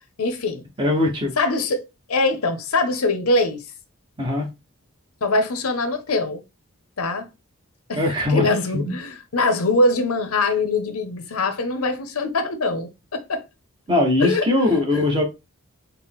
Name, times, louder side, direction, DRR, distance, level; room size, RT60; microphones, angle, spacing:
voice 1, 0.2-0.6 1.4-1.8 2.1-3.7 5.2-6.4 7.0-7.3 7.9-8.0 8.3-13.4 14.2-14.5, left 2 dB, 90° left, 0.7 m, -22 dB
voice 2, 0.8-1.3 4.2-4.5 7.9-8.5 8.7-8.9 13.9-15.2, left 2 dB, 25° right, 0.9 m, -20 dB
4.0 x 2.1 x 3.5 m
head